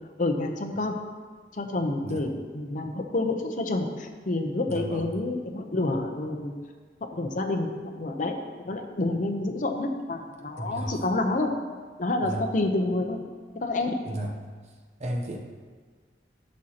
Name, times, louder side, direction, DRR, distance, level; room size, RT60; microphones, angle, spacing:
voice 1, 0.2-0.9 1.5-6.5 7.1-8.3 8.7-11.5 12.0-13.2 13.6-14.0, left 2 dB, 45° left, 4 dB, 0.8 m, -28 dB
voice 2, 4.7-5.2 10.6-11.0 12.2-12.5 14.0-14.4 15.0-15.4, right 1 dB, 40° right, 1 dB, 0.8 m, -33 dB
11.5 x 6.4 x 2.9 m, 1.5 s
head